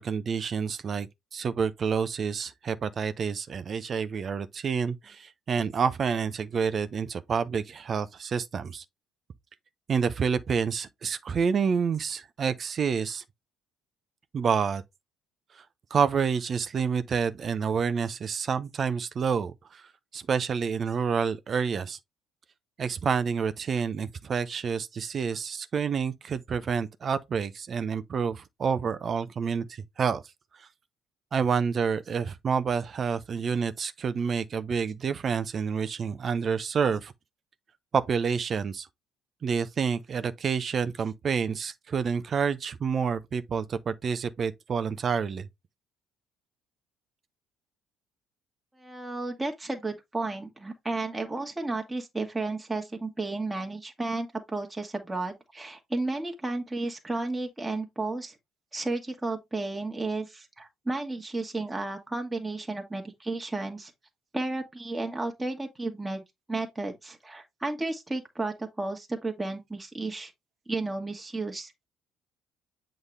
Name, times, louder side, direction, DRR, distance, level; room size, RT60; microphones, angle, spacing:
voice 1, 0.0-8.8 9.9-13.2 14.3-14.8 15.9-19.8 20.1-22.0 22.8-30.2 31.3-37.1 37.9-38.9 39.4-45.5, right 6 dB, 45° right, 0.7 m, -28 dB
voice 2, 48.8-58.3 58.7-63.9 64.3-70.3 70.7-71.7, right 2 dB, 15° right, 1.6 m, -33 dB
8.1 x 3.8 x 3.3 m
hypercardioid pair, 55°, 0 cm